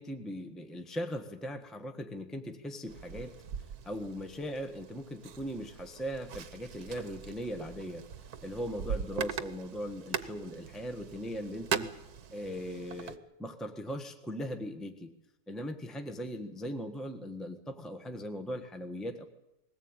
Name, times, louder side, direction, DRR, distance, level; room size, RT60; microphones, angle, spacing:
voice 1, 0.0-3.3 3.8-8.0 8.4-11.9 12.3-15.1 15.5-19.2, equal, ahead, 6 dB, 1.4 m, -39 dB
sound 1, 2.9-13.2, right 7 dB, 75° right, 1.6 m, -41 dB
21.0 x 18.5 x 9.0 m, 0.87 s
omnidirectional pair, 1.7 m